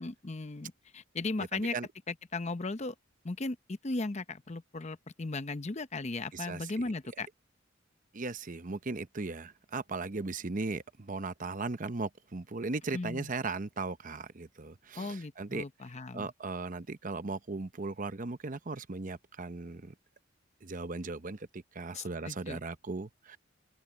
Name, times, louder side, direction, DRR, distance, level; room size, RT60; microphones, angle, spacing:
voice 1, 0.0-1.7 2.1-2.9 3.2-7.3 12.9-13.3 15.0-16.3 21.9-22.6, left 3 dB, 35° left, 0.8 m, -37 dB
voice 2, 1.4-1.9 6.3-6.7 8.1-19.9 20.6-23.4, right 3 dB, 40° right, 0.8 m, -38 dB
open air
head